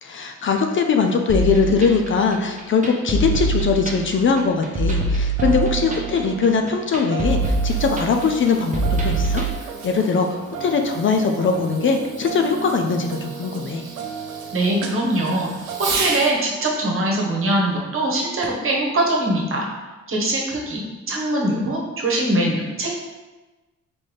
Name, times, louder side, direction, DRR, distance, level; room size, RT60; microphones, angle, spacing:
voice 1, 0.0-13.8, left 5 dB, 40° left, 4 dB, 0.5 m, -21 dB
sound 1, 1.3-9.5, right 3 dB, 25° right, 0.9 m, -24 dB
sound 2, 5.4-15.8, right 6 dB, 85° right, 0.6 m, -35 dB
Fireworks, 7.1-16.4 18.4-18.8 19.5-19.6, right 3 dB, 60° right, 0.9 m, -34 dB
voice 2, 14.5-15.5 16.0-19.6 20.1-23.0, right 1 dB, 45° right, -2 dB, 1.2 m, -22 dB
3.8 x 3.8 x 3.3 m, 1.1 s
cardioid pair, 90°, 30 cm